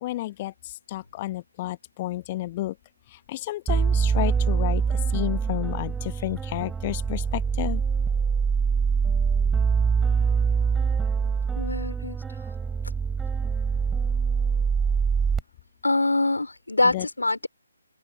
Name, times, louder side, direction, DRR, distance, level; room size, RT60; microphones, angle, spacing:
voice 1, 0.0-2.7 3.1-7.8 16.9-17.1, left 16 dB, 25° left, 1.0 m, -31 dB
sound 1, 3.7-15.4, right 6 dB, 5° right, 3.2 m, -24 dB
voice 2, 11.5-12.2 15.8-17.5, left 2 dB, 70° left, 4.2 m, -24 dB
figure-of-eight pair, 145°, 0 cm